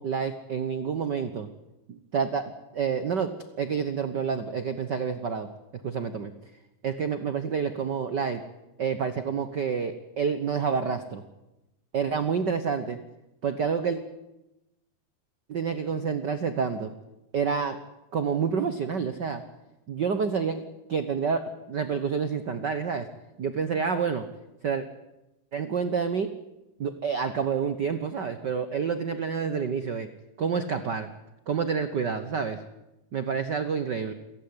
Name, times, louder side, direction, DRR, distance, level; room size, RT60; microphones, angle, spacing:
voice 1, 0.0-1.5 1.9-2.4 2.7-3.3 3.6-5.5 5.8-6.3 6.8-8.4 8.8-11.2 11.9-13.0 13.4-14.0 15.5-16.9 17.3-17.8 18.1-19.4 19.9-20.6 20.9-23.1 23.4-24.2 24.6-24.8 25.5-26.3 26.8-30.1 30.4-31.1 31.5-32.6 33.1-34.1, right 6 dB, 85° right, 10 dB, 0.9 m, -28 dB
28.5 x 16.0 x 9.8 m, 0.97 s
omnidirectional pair, 3.9 m